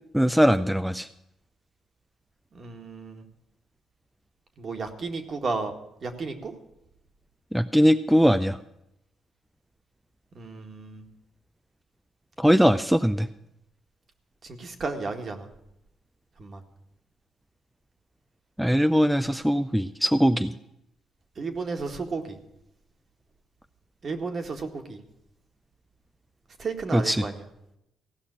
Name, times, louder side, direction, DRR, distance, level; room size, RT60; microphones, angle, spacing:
voice 1, 0.1-1.1 7.5-8.6 12.4-13.3 18.6-20.5 26.9-27.2, equal, 5° right, 10 dB, 0.5 m, -21 dB
voice 2, 2.5-3.2 4.6-5.7 6.0-6.5 10.4-11.0 14.6-15.5 16.4-16.6 21.4-22.4 24.0-25.0 26.6-27.4, right 4 dB, 45° right, 5 dB, 1.8 m, -33 dB
16.0 x 5.7 x 9.8 m, 0.84 s
cardioid pair, 90°, 0 cm